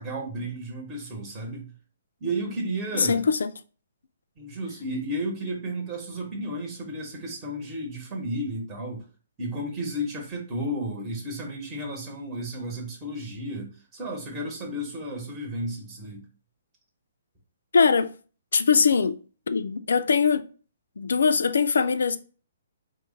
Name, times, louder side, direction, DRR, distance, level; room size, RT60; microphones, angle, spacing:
voice 1, 0.0-1.7 2.2-3.2 4.4-9.1 9.4-16.2, right 1 dB, 20° right, 1.0 m, -33 dB
voice 2, 2.9-3.5 17.7-18.1 18.5-19.2 19.5-20.5 21.0-22.2, left 5 dB, 75° left, 0.3 m, -21 dB
3.1 x 2.1 x 3.7 m
hypercardioid pair, 135°, 0 cm